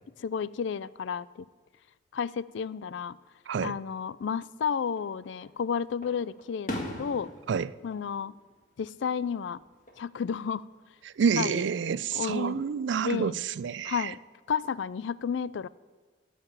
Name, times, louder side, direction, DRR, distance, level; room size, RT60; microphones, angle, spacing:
voice 1, 0.2-1.5 2.1-3.2 3.6-7.3 7.8-8.3 8.8-9.6 10.0-10.7 11.4-11.7 12.1-12.6 13.0-13.4 13.8-14.2 14.5-15.7, left 6 dB, 70° left, 0.3 m, -32 dB
voice 2, 3.5-3.8 7.5-7.7 11.1-14.1, right 6 dB, 65° right, 0.3 m, -28 dB
Fireworks, 4.8-5.5 6.0-9.1 9.5-10.0 11.6-12.4, left 1 dB, 40° left, 1.6 m, -41 dB
13.5 x 5.8 x 8.9 m
head